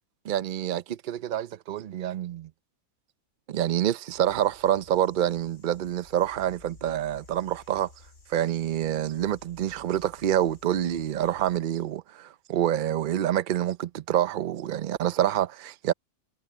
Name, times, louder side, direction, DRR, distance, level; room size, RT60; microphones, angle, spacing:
voice 1, 0.2-2.5 3.5-7.9 8.3-15.9, right 11 dB, 55° right, 0.6 m, -27 dB
sound 1, 4.1-11.6, left 3 dB, 55° left, 2.4 m, -54 dB
omnidirectional pair, 1.4 m